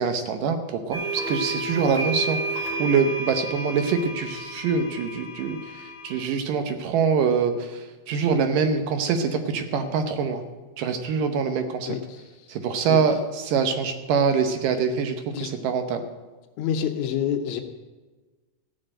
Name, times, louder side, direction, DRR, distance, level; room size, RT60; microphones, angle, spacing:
voice 1, 0.0-2.4 2.8-10.4 10.8-11.9 12.5-13.2 13.5-16.0, right 6 dB, 70° right, 7 dB, 2.3 m, -24 dB
sound 1, 0.9-6.2, right 2 dB, 35° right, 5.5 m, -31 dB
voice 2, 11.9-12.6 12.9-13.0 15.3-15.5 16.6-17.6, left 9 dB, 90° left, 5 dB, 1.6 m, -28 dB
15.0 x 6.6 x 8.7 m, 1.3 s
omnidirectional pair, 4.3 m